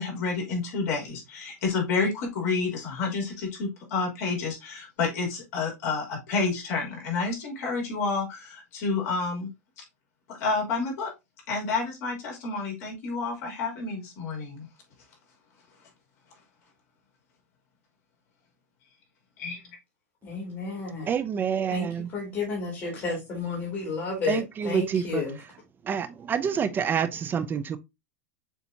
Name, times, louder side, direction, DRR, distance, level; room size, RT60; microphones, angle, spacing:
voice 1, 0.0-9.5 10.4-11.1 11.5-14.7 19.4-19.6, left 4 dB, 60° left, 3.0 m, -29 dB
voice 2, 20.2-21.1 21.7-25.4, left 4 dB, 30° left, 2.3 m, -32 dB
voice 3, 21.1-22.1 24.3-25.2 25.8-27.8, right 7 dB, 20° right, 0.4 m, -27 dB
6.8 x 2.8 x 2.7 m
supercardioid pair, 135°, 9 cm